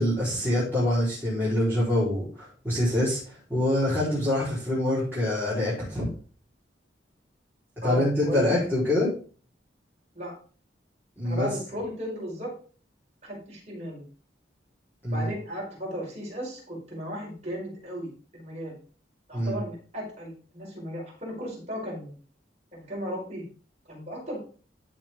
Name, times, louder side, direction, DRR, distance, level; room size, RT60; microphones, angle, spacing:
voice 1, 0.0-3.2 3.5-6.1 7.8-9.1 11.2-11.5 15.0-15.3 19.3-19.6, left 1 dB, 10° right, -10 dB, 4.5 m, -25 dB
voice 2, 7.8-8.5 10.2-10.3 11.2-12.5 13.2-14.0 15.1-18.7 19.3-22.2 22.7-23.4 23.9-24.4, equal, 35° right, -4 dB, 5.3 m, -35 dB
13.5 x 5.3 x 3.8 m, 0.40 s
head